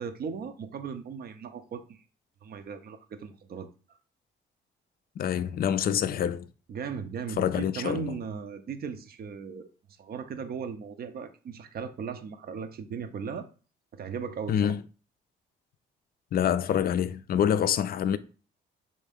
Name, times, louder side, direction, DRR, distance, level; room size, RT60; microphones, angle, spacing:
voice 1, 0.0-2.0 2.4-3.7 6.7-9.7 10.0-13.5 14.0-14.7, right 6 dB, 50° right, 0.6 m, -37 dB
voice 2, 5.2-6.5 7.4-8.2 14.5-14.8 16.3-18.2, left 9 dB, 50° left, 0.4 m, -26 dB
3.4 x 2.7 x 3.4 m
cardioid pair, 90°, 20 cm